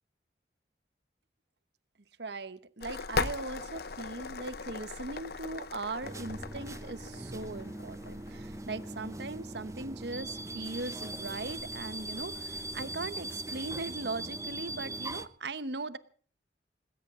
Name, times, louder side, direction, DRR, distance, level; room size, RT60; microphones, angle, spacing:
voice 1, 2.2-16.0, right 3 dB, 70° right, 14 dB, 1.0 m, -39 dB
sound 1, 2.8-12.9, left 4 dB, 60° left, 0.8 m, -41 dB
sound 2, 6.0-15.3, right 1 dB, 15° right, 0.8 m, -40 dB
20.0 x 17.0 x 3.7 m, 0.44 s
head